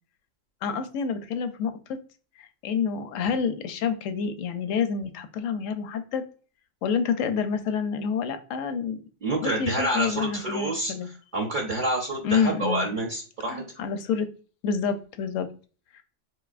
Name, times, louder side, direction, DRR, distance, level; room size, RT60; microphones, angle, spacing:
voice 1, 0.6-2.0 2.4-6.2 6.8-9.0 9.4-11.1 12.2-12.9 13.5-14.3 14.6-15.5 15.9-16.0, left 6 dB, 85° left, 9 dB, 0.9 m, -28 dB
voice 2, 9.2-10.9 11.3-13.7, right 1 dB, 50° right, 0 dB, 0.7 m, -28 dB
3.9 x 2.7 x 2.4 m, 0.38 s
omnidirectional pair, 1.3 m